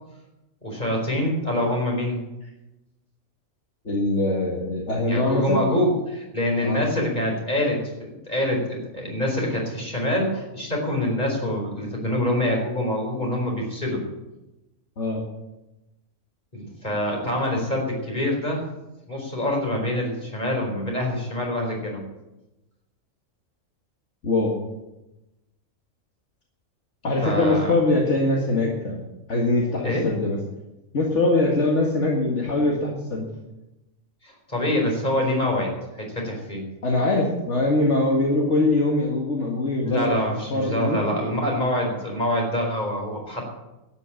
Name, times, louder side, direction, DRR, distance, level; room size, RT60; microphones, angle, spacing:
voice 1, 0.6-2.2 5.1-14.0 16.5-18.6 19.1-22.0 27.2-27.7 29.8-30.1 34.2-36.6 39.8-43.5, left 1 dB, 35° left, 0 dB, 4.7 m, -25 dB
voice 2, 3.9-5.6 6.6-6.8 15.0-15.2 24.2-24.5 27.0-29.0 29.3-30.4 30.9-33.3 36.8-40.2 40.5-41.0, left 2 dB, 60° left, -2 dB, 2.2 m, -22 dB
12.0 x 9.4 x 8.7 m, 0.99 s
omnidirectional pair, 1.4 m